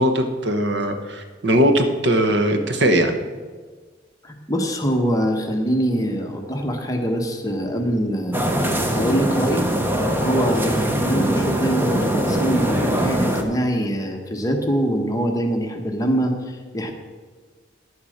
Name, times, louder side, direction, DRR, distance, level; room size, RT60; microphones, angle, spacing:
voice 1, 0.0-3.1, equal, 65° right, 7 dB, 1.0 m, -19 dB
voice 2, 4.2-8.4 8.9-9.7 10.1-16.9, equal, 20° left, 3 dB, 1.1 m, -23 dB
sound 1, 8.3-13.4, equal, 10° right, 0.9 m, -22 dB
10.5 x 7.1 x 6.4 m, 1.4 s
head